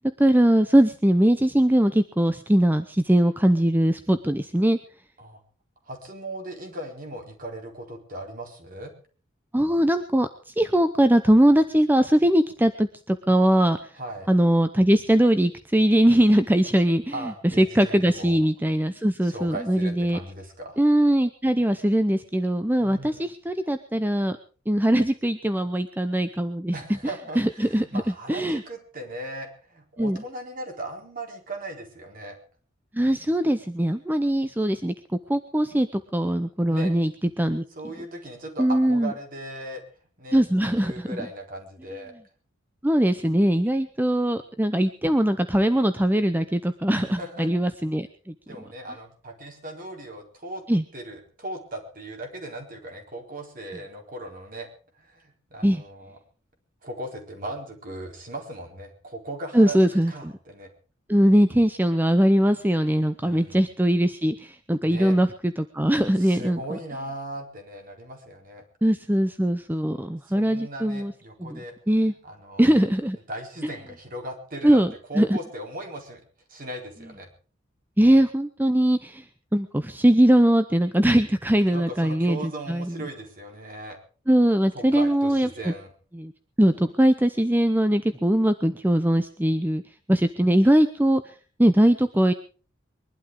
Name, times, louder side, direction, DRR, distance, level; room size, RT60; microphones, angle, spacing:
voice 1, 0.2-4.8 9.5-10.3 10.6-13.8 14.3-17.3 17.6-20.2 20.8-24.4 24.7-26.7 27.4-28.0 28.3-28.6 30.0-30.2 32.9-34.9 35.3-37.1 37.4-37.6 38.6-39.1 40.3-41.2 42.8-48.1 50.7-50.8 55.6-55.8 59.5-60.3 61.1-66.6 68.8-71.1 71.4-71.6 71.9-72.1 72.6-73.2 74.6-75.4 78.0-79.2 79.5-82.4 82.7-83.0 84.3-85.7 86.1-86.3 86.6-89.8 90.1-91.2 91.6-92.3, right 1 dB, 10° right, 10 dB, 0.7 m, -21 dB
voice 2, 5.8-8.9 13.9-14.3 17.1-18.4 19.2-20.8 22.8-23.3 26.7-32.4 36.7-37.0 37.8-39.8 40.2-42.1 46.9-47.5 48.5-50.6 50.9-54.7 54.9-56.2 56.8-60.7 63.2-63.6 64.8-65.2 66.2-68.6 69.9-71.8 72.0-72.7 73.3-76.2 76.5-77.3 81.5-84.0 84.7-85.9, right 1 dB, 45° right, 3 dB, 4.3 m, -38 dB
22.5 x 12.0 x 4.9 m, 0.39 s
head